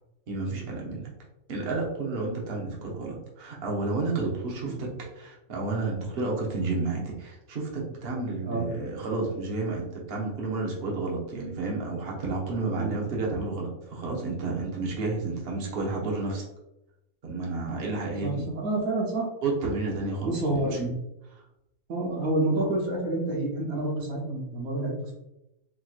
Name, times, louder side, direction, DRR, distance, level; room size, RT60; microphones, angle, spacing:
voice 1, 0.3-1.1 1.5-4.9 5.1-16.4 17.2-18.5 19.4-20.7, right 3 dB, 50° right, -2 dB, 1.0 m, -31 dB
voice 2, 18.2-19.3 20.2-20.9 21.9-25.1, right 2 dB, 85° right, -1 dB, 1.3 m, -28 dB
4.2 x 2.9 x 2.4 m, 0.88 s
omnidirectional pair, 1.5 m